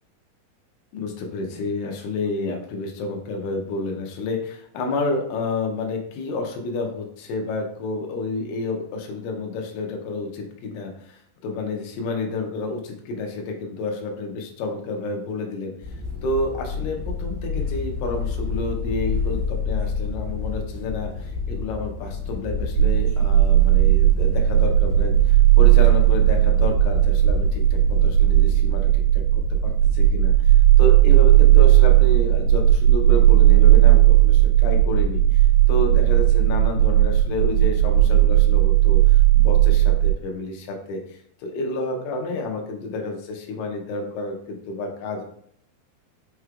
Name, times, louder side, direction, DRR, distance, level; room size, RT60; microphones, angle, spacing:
voice 1, 0.9-45.2, left 2 dB, 75° left, 2 dB, 2.2 m, -30 dB
sound 1, 15.8-28.7, left 4 dB, 50° left, 1.3 m, -29 dB
sound 2, 22.8-40.1, right 14 dB, 85° right, 2.5 m, -16 dB
5.7 x 3.1 x 2.3 m, 0.65 s
omnidirectional pair, 4.5 m